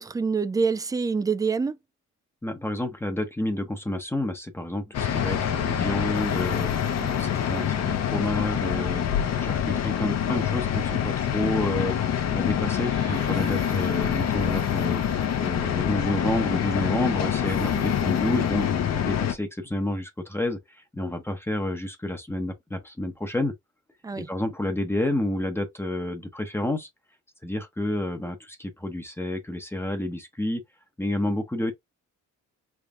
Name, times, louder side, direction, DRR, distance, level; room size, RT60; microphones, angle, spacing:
voice 1, 0.0-1.8 6.9-7.1 17.7-17.9 24.0-24.3, right 5 dB, 10° right, 0.3 m, -26 dB
voice 2, 2.4-23.5 24.2-26.9 27.4-30.6 31.0-31.7, left 1 dB, 10° left, 0.8 m, -30 dB
sound 1, 4.9-19.3, left 9 dB, 60° left, 0.8 m, -26 dB
sound 2, 12.8-17.6, right 4 dB, 60° right, 1.6 m, -45 dB
3.5 x 3.2 x 2.5 m
cardioid pair, 90°, 30 cm